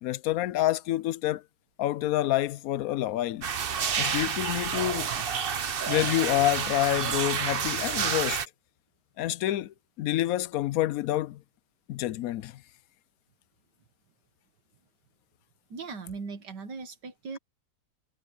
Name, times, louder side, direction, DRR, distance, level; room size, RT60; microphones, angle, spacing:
voice 1, 0.0-1.4 1.8-3.5 4.0-5.2 5.9-8.4 9.2-11.4 11.9-12.6, left 14 dB, 70° left, 0.9 m, -28 dB
sound 1, 3.4-8.5, right 7 dB, 45° right, 0.8 m, -29 dB
voice 2, 15.7-17.4, right 4 dB, 80° right, 2.1 m, -39 dB
omnidirectional pair, 1.8 m